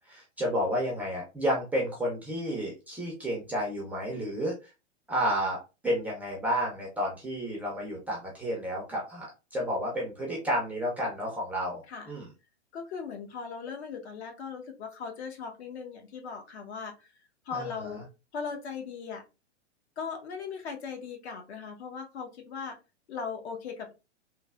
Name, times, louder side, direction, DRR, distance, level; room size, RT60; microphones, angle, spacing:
voice 1, 0.1-4.5 5.1-5.6 5.8-9.3 9.5-12.3 17.5-18.0, equal, 5° right, -3 dB, 0.4 m, -31 dB
voice 2, 12.7-17.1 17.5-18.0 18.3-19.2 20.0-22.8 23.1-23.9, left 6 dB, 65° left, 4 dB, 0.9 m, -38 dB
3.1 x 2.1 x 2.3 m, 0.28 s
hypercardioid pair, 130°, 35 cm